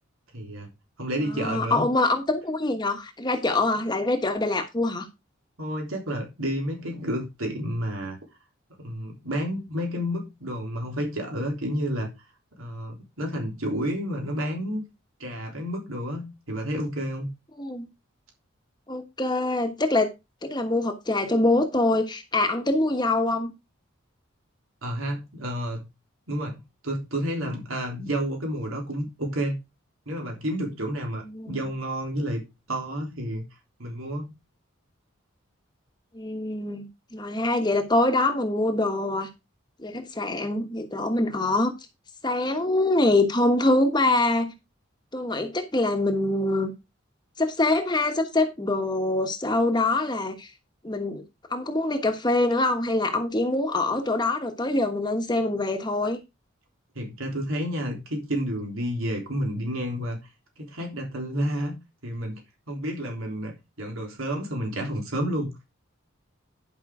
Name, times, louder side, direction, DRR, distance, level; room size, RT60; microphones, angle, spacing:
voice 1, 0.3-0.7 1.0-1.8 5.6-8.2 8.8-12.1 12.6-14.8 15.2-17.3 24.8-25.9 26.3-29.6 30.1-33.4 33.8-34.3 56.9-60.2 60.6-61.7 62.0-62.4 62.7-65.5, equal, 85° right, 3.4 m, -30 dB
voice 2, 1.3-5.1 17.5-17.9 18.9-20.1 20.4-23.5 31.3-31.6 36.1-39.3 39.8-41.7 42.2-44.5 45.1-46.7 47.4-50.5 50.8-51.2 51.5-56.2, left 2 dB, 20° left, 1.2 m, -24 dB
11.0 x 5.5 x 4.8 m
head